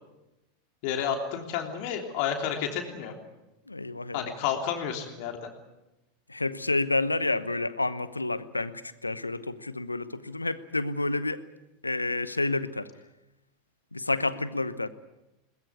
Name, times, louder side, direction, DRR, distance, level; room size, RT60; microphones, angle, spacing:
voice 1, 0.8-3.1 4.1-5.5, left 8 dB, 50° left, 4 dB, 3.2 m, -31 dB
voice 2, 3.7-4.3 6.3-11.4 11.8-12.9 13.9-14.9, left 2 dB, 85° left, 16 dB, 1.0 m, -29 dB
22.0 x 21.0 x 8.5 m, 0.97 s
figure-of-eight pair, 85°, 0 cm